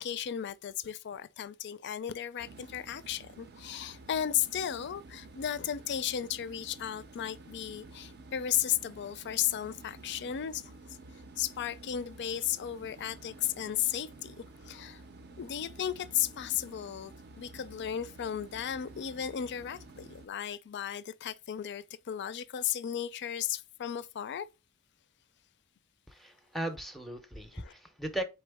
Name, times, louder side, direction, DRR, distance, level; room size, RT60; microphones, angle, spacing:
voice 1, 0.0-10.7 11.4-14.4 14.6-15.0 15.4-24.5 27.5-27.7, left 10 dB, 50° left, 0.4 m, -35 dB
sound 1, 2.4-20.3, right 3 dB, 45° right, 0.5 m, -51 dB
voice 2, 26.1-28.2, right 1 dB, ahead, 0.6 m, -37 dB
4.3 x 3.6 x 3.4 m
head